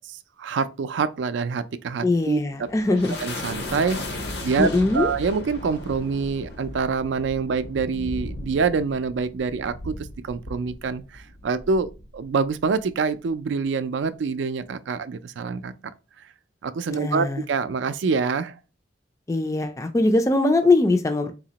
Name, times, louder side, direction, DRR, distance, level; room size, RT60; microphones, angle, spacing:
voice 1, 0.0-2.7 3.2-10.0 10.2-15.7 16.6-18.6, right 5 dB, 80° right, 0.4 m, -26 dB
voice 2, 2.0-3.1 4.6-5.1 16.9-17.4 19.3-21.3, left 2 dB, 15° left, 0.3 m, -21 dB
sound 1, 2.4-12.9, left 1 dB, 60° left, 0.6 m, -37 dB
4.0 x 2.9 x 2.8 m
head